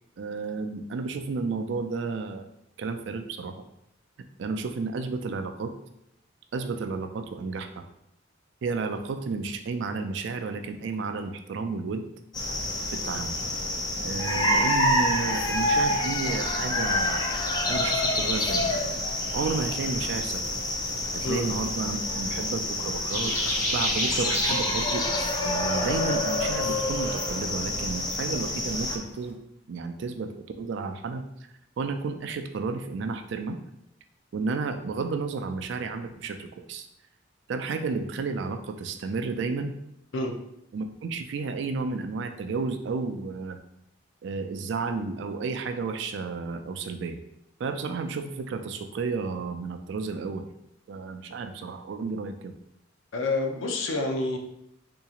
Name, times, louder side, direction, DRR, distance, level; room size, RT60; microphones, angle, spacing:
voice 1, 0.2-2.5 2.8-3.6 4.4-5.7 6.5-7.8 8.6-12.0 12.9-13.3 14.0-17.3 17.7-18.7 19.3-20.4 21.1-25.1 25.4-29.4 29.7-31.2 31.8-33.6 34.3-36.9 37.5-39.8 40.7-43.6 44.2-47.2 47.6-50.5 50.9-52.5, right 4 dB, 65° right, 7 dB, 0.3 m, -32 dB
sound 1, 12.3-29.0, left 1 dB, 20° left, 0.4 m, -27 dB
sound 2, 23.1-29.3, left 1 dB, 35° left, 1.0 m, -33 dB
voice 2, 53.1-54.4, left 2 dB, 80° left, 4 dB, 0.5 m, -28 dB
3.7 x 2.9 x 2.4 m, 0.82 s
head